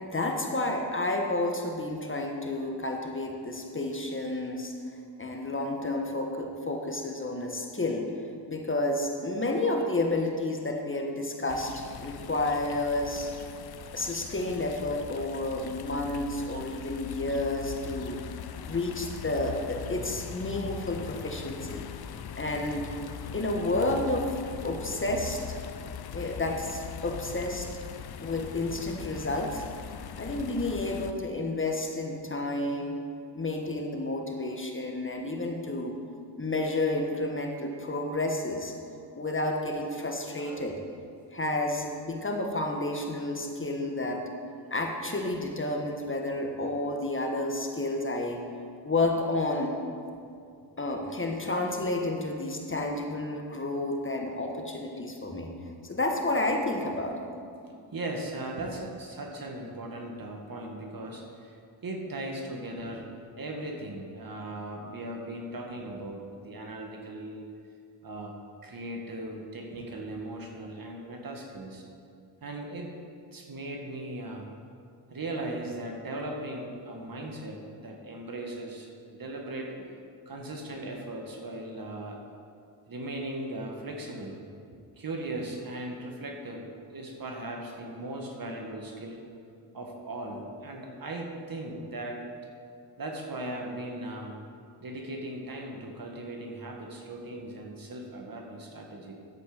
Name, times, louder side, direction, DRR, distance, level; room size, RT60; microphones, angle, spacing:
voice 1, 0.0-4.7 5.2-8.1 8.5-13.3 13.9-18.2 18.6-21.8 22.3-22.8 23.3-24.3 24.6-25.4 26.1-27.7 28.2-29.6 30.1-33.0 33.3-36.0 36.4-38.7 39.1-40.7 41.3-44.3 44.7-48.4 48.8-49.7 50.8-55.5 55.8-57.4, left 2 dB, 25° left, 2 dB, 1.5 m, -30 dB
sound 1, 11.5-31.1, left 8 dB, 50° left, 0.7 m, -41 dB
voice 2, 57.7-61.6 61.8-63.1 63.4-67.5 68.0-68.3 68.6-71.8 72.4-72.9 73.3-74.5 75.1-79.7 80.3-82.2 82.9-84.4 84.7-89.2 89.7-92.3 93.0-94.4 94.8-99.1, right 1 dB, 45° right, 2 dB, 1.9 m, -38 dB
11.5 x 7.9 x 5.1 m, 2.3 s
supercardioid pair, 60°, 47 cm